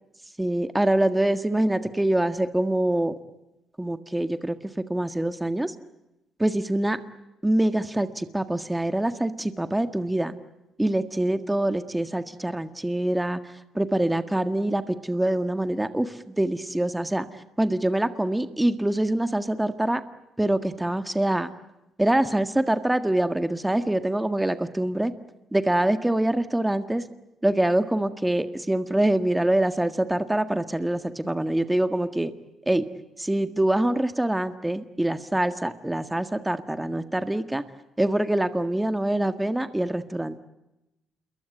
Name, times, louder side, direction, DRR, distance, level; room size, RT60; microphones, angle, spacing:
voice 1, 0.4-3.1 3.8-5.7 6.4-7.0 7.4-10.3 10.8-20.0 20.4-21.5 22.0-25.1 25.5-27.0 27.4-32.3 32.6-32.8 33.2-37.6 38.0-40.4, right 1 dB, 10° right, 10 dB, 1.7 m, -25 dB
28.0 x 22.5 x 8.4 m, 0.90 s
cardioid pair, 90°, 0 cm